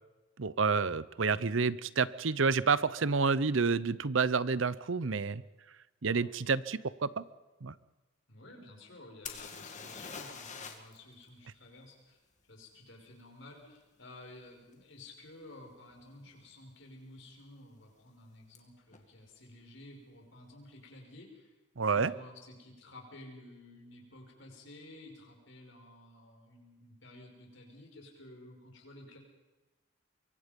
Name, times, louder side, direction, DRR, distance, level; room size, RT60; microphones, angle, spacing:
voice 1, 0.4-5.4 6.0-7.2 7.6-7.7 21.8-22.1, right 4 dB, 70° right, 17 dB, 0.7 m, -29 dB
voice 2, 8.3-12.2 12.5-21.5 21.8-29.2, left 1 dB, 65° left, 2 dB, 5.7 m, -53 dB
sound 1, 9.3-11.0 11.2-11.3 14.7-14.8 15.5-15.7 15.9-16.5 18.6-18.7 18.9-19.0, left 5 dB, 35° left, 2.2 m, -44 dB
24.5 x 24.0 x 5.3 m, 1.1 s
head